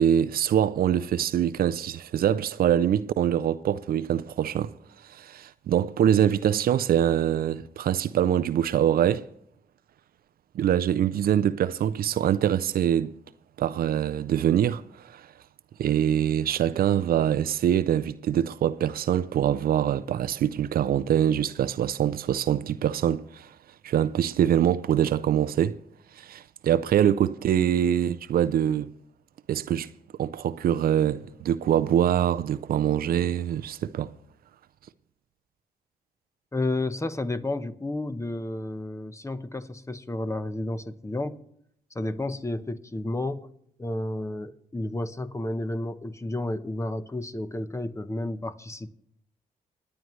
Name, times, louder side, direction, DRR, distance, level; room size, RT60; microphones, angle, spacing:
voice 1, 0.0-4.7 5.1-9.2 10.5-13.2 13.6-15.3 15.8-23.5 23.8-25.8 26.2-28.9 29.5-29.9 30.2-34.1, right 10 dB, 70° right, 0.5 m, -24 dB
voice 2, 36.5-41.4 41.9-43.5 43.8-48.9, left 2 dB, 20° left, 0.9 m, -31 dB
27.5 x 9.3 x 3.1 m
supercardioid pair, 55°, 16 cm